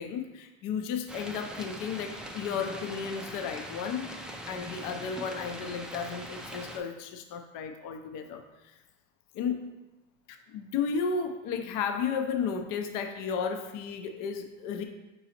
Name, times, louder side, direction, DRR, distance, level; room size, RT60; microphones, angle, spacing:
voice 1, 0.0-4.1 4.5-8.7 9.3-9.7 10.3-14.8, left 6 dB, 60° left, 6 dB, 0.6 m, -33 dB
sound 1, 1.1-6.8, equal, ahead, 0.3 m, -41 dB
4.6 x 4.1 x 2.8 m, 1.0 s
supercardioid pair, 95°, 36 cm